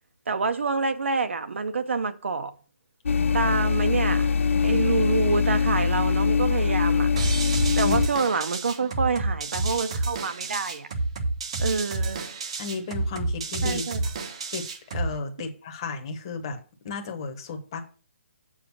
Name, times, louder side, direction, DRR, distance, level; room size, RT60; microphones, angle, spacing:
voice 1, 0.3-2.5 3.3-4.3 4.6-7.1 7.8-10.9 11.6-12.3 13.6-14.0 15.4-15.5, right 4 dB, 65° right, 0.8 m, -27 dB
sound 1, 3.1-8.1, left 5 dB, 75° left, 0.4 m, -23 dB
sound 2, 7.2-15.2, right 3 dB, 25° right, 0.7 m, -29 dB
voice 2, 12.6-13.8 14.5-14.6 14.9-16.6 16.8-17.8, left 4 dB, 20° left, 1.0 m, -33 dB
7.4 x 4.9 x 6.0 m
hypercardioid pair, 180°, 7 cm